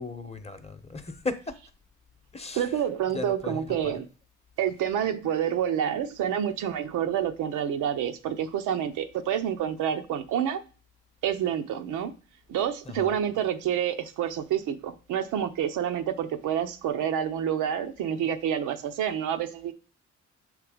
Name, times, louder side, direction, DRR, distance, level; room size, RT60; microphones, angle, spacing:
voice 1, 0.0-1.5 2.3-4.0 12.8-13.2, left 3 dB, 20° left, 0.8 m, -37 dB
voice 2, 2.5-4.0 4.6-10.6 11.2-12.1 12.5-19.7, right 9 dB, 85° right, 0.7 m, -28 dB
6.8 x 3.2 x 4.9 m
cardioid pair, 90°, 30 cm